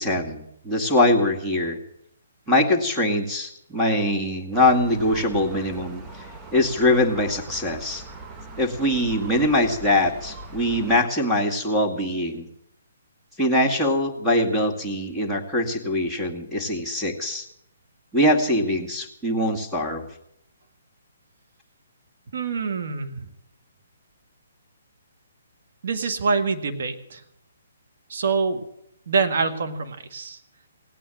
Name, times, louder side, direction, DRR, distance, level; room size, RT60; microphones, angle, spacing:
voice 1, 0.0-1.8 2.5-6.0 6.5-8.0 8.6-12.5 13.4-17.5 18.1-20.1, left 1 dB, ahead, -2 dB, 2.2 m, -22 dB
Gull seagull, 4.5-11.1, right 2 dB, 15° right, 1.4 m, -40 dB
voice 2, 22.3-23.3 25.8-27.2 28.1-28.6 29.1-30.4, right 4 dB, 60° right, 6 dB, 1.8 m, -25 dB
17.5 x 9.2 x 9.1 m, 0.75 s
figure-of-eight pair, 135°, 0 cm